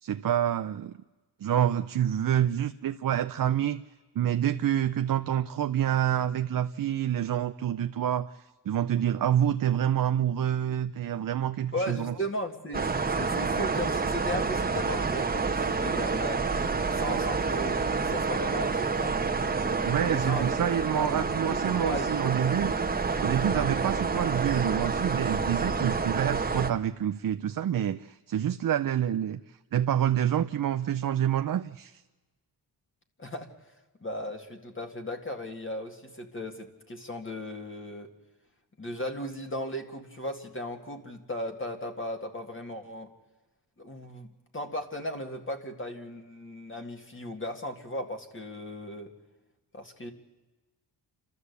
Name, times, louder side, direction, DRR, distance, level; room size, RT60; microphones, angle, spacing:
voice 1, 0.0-1.0 1.4-3.8 4.1-12.2 19.8-22.7 23.2-32.0, right 10 dB, 55° right, 10 dB, 0.6 m, -27 dB
voice 2, 11.7-12.9 13.1-16.4 16.9-19.1 20.0-20.5 20.9-22.1 33.2-33.5 34.0-38.1 38.8-43.1 43.8-49.1 49.7-50.1, equal, 30° left, 4 dB, 2.1 m, -36 dB
sound 1, 12.7-26.7, right 4 dB, 20° right, 1.3 m, -28 dB
28.5 x 13.0 x 8.2 m, 1.2 s
cardioid pair, 95°, 41 cm